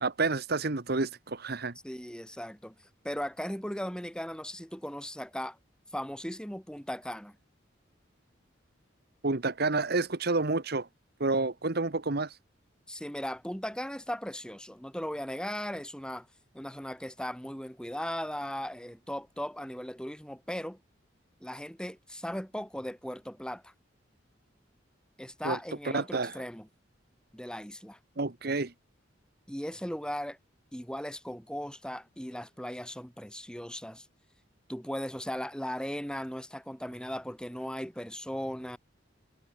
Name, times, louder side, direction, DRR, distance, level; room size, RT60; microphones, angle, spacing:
voice 1, 0.0-1.7 9.2-10.9 11.2-12.4 25.4-25.6 25.9-26.3 28.2-28.7, right 3 dB, 55° right, 1.3 m, -29 dB
voice 2, 1.8-2.7 3.0-5.6 5.9-7.4 12.9-16.3 16.5-20.8 21.4-23.7 25.2-26.7 27.3-28.0 29.5-30.4 30.7-34.1 34.7-38.8, equal, 5° left, 6.0 m, -37 dB
head